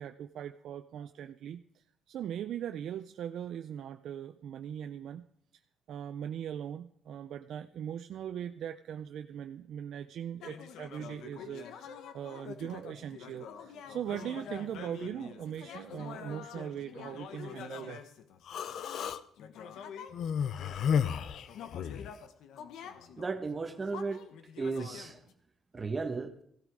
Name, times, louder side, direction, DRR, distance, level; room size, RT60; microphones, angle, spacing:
voice 1, 0.0-5.3 5.9-18.0, right 9 dB, 75° right, 8 dB, 0.6 m, -40 dB
sound 1, 10.4-20.2 20.6-25.3, left 7 dB, 85° left, 1.2 m, -46 dB
Human voice, 18.5-19.2 20.1-22.1, left 7 dB, 70° left, 0.7 m, -32 dB
voice 2, 23.2-24.2 24.6-25.2 25.7-26.3, right 4 dB, 30° right, 7 dB, 1.3 m, -34 dB
15.5 x 13.0 x 4.8 m, 0.68 s
cardioid pair, 90°, 0 cm